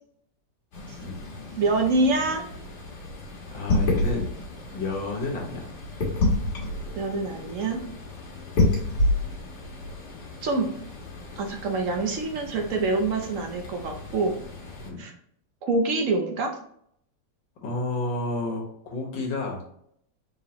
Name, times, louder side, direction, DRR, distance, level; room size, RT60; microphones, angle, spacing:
sound 1, 0.7-14.9, left 2 dB, 60° left, 1.9 m, -30 dB
voice 1, 1.6-2.4 7.0-7.8 10.4-10.7 11.4-14.4 15.0-15.1 15.6-16.5, right 3 dB, 60° right, 3 dB, 0.9 m, -25 dB
voice 2, 3.5-4.3 4.7-5.7 8.6-8.8 14.8-15.0 17.6-18.6 18.9-19.6, left 2 dB, 80° left, 0 dB, 2.0 m, -30 dB
4.2 x 3.8 x 2.9 m, 0.68 s
omnidirectional pair, 2.0 m